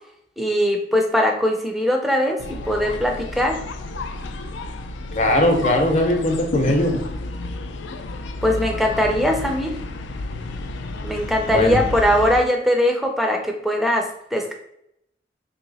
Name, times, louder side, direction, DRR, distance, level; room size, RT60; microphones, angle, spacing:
voice 1, 0.4-2.4 2.7-3.6 8.4-9.7 11.0-14.1 14.3-14.5, equal, ahead, 2 dB, 0.4 m, -20 dB
sound 1, 2.4-12.4, left 2 dB, 85° left, 0.4 m, -31 dB
voice 2, 5.2-6.9 11.5-11.8, left 1 dB, 40° left, 3 dB, 0.7 m, -19 dB
3.2 x 2.9 x 4.0 m, 0.78 s
head